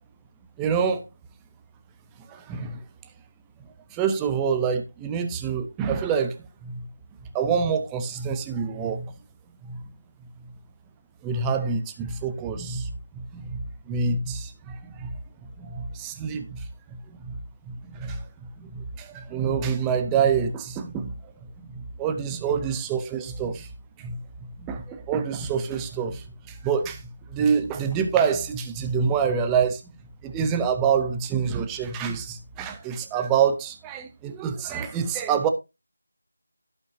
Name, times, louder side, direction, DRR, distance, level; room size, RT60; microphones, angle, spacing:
voice 1, 0.6-1.0 2.3-2.8 3.9-6.9 7.3-9.1 9.6-9.8 11.2-15.1 15.4-17.4 17.7-18.3 18.6-21.3 21.6-23.7 24.0-24.2 24.6-29.8 30.2-35.5, right 6 dB, 5° right, 0.5 m, -27 dB
16.0 x 5.4 x 2.7 m
figure-of-eight pair, 175°, 0 cm